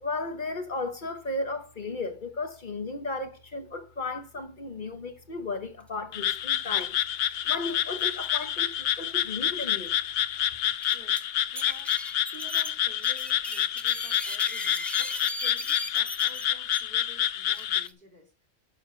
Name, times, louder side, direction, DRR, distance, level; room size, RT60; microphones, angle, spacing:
voice 1, 0.0-7.0 7.4-10.0, left 3 dB, 50° left, 1.1 m, -34 dB
Frog, 6.1-17.9, left 11 dB, 70° left, 0.8 m, -28 dB
sound 1, 6.8-7.0 7.3-7.4 8.0-8.2 9.1-9.2 9.7-9.8 10.6-11.2 11.6-16.8 17.5-17.9, equal, ahead, 0.7 m, -37 dB
voice 2, 10.4-18.5, right 1 dB, 50° right, 2.5 m, -52 dB
11.5 x 6.8 x 3.2 m
omnidirectional pair, 1.1 m